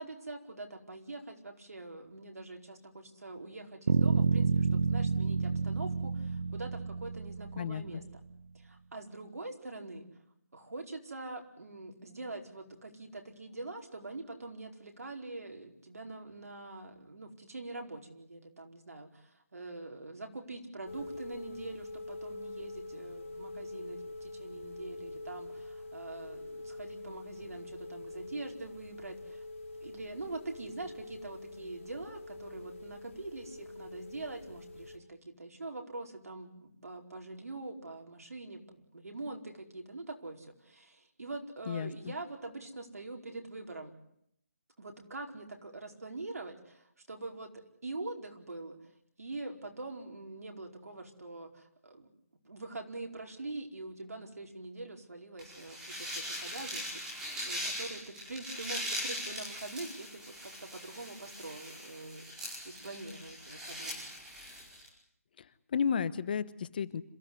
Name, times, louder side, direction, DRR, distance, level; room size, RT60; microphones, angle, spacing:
voice 1, 0.0-8.2 8.5-10.1 10.5-29.4 29.8-43.9 44.8-48.8 49.2-52.1 52.4-57.0 57.3-64.1, right 2 dB, 80° right, 3 dB, 4.7 m, -44 dB
sound 1, 3.9-7.9, right 5 dB, 55° right, 1.2 m, -29 dB
voice 2, 7.6-8.0 41.7-41.9 65.4-65.5 65.7-67.0, left 7 dB, 35° left, 16 dB, 1.0 m, -32 dB
sound 2, 20.8-35.0, left 2 dB, 55° left, 3.8 m, -45 dB
sound 3, 55.4-64.9, equal, 5° right, 5.1 m, -41 dB
27.0 x 15.5 x 9.6 m, 0.73 s
hypercardioid pair, 165°, 8 cm